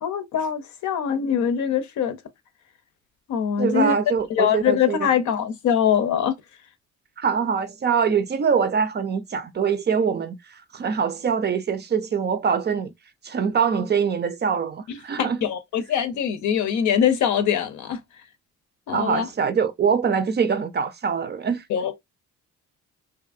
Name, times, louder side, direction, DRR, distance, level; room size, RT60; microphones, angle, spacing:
voice 1, 0.0-2.2 3.3-3.9 4.3-6.4 14.9-18.0 18.9-19.3 21.7-21.9, left 8 dB, 75° left, 0.6 m, -23 dB
voice 2, 3.6-5.1 7.2-12.9 13.2-15.4 18.9-21.6, right 6 dB, 35° right, 0.4 m, -24 dB
2.7 x 2.5 x 2.4 m
cardioid pair, 90°, 30 cm